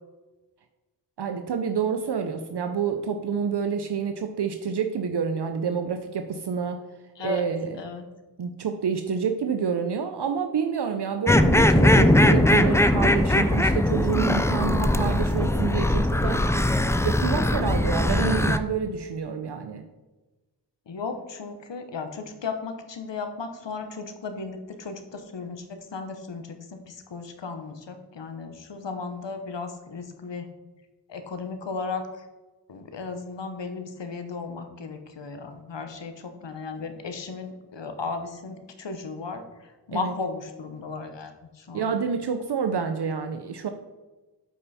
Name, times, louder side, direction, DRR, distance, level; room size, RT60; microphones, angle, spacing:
voice 1, 1.2-6.8 7.2-7.8 8.4-16.5 17.0-19.8 39.9-40.1 41.7-43.7, right 6 dB, 70° right, 7 dB, 0.6 m, -28 dB
voice 2, 7.7-8.0 18.2-18.3 20.9-26.6 26.9-30.5 31.1-32.0 32.7-39.4 39.9-41.9, left 4 dB, 90° left, 7 dB, 1.0 m, -35 dB
sound 1, 11.3-18.6, left 1 dB, 5° left, 0.3 m, -20 dB
8.3 x 5.6 x 4.1 m, 1.2 s
wide cardioid pair, 80°, 42 cm